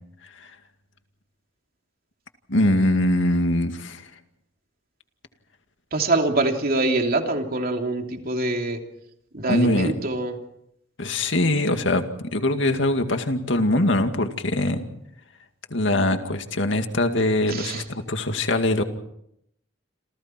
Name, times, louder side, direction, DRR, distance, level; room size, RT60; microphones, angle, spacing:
voice 1, 2.5-4.0 9.5-9.9 11.0-12.0 12.3-14.9 15.7-18.8, left 1 dB, 70° left, 6 dB, 2.3 m, -22 dB
voice 2, 5.9-8.8 9.3-10.3 17.5-17.8, right 2 dB, 50° right, 3 dB, 3.0 m, -24 dB
28.0 x 28.0 x 4.6 m, 0.76 s
head